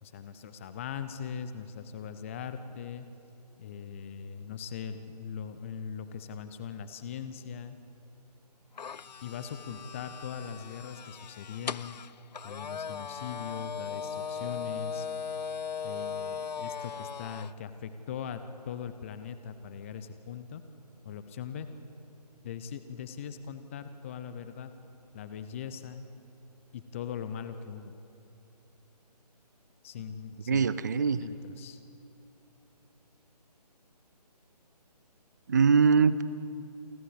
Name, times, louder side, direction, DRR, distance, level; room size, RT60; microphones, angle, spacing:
voice 1, 0.0-3.1 3.6-7.8 9.2-12.0 12.4-15.1 15.8-20.6 21.0-21.7 22.4-24.7 25.1-26.1 26.7-27.9 29.8-30.7 31.2-31.8, left 7 dB, 20° left, 11 dB, 0.6 m, -40 dB
sound 1, 8.8-17.5, left 6 dB, 80° left, 0.4 m, -38 dB
voice 2, 30.5-31.2 35.5-36.2, right 5 dB, 25° right, 16 dB, 0.4 m, -22 dB
28.0 x 12.5 x 8.1 m, 2.7 s
figure-of-eight pair, 150°, 21 cm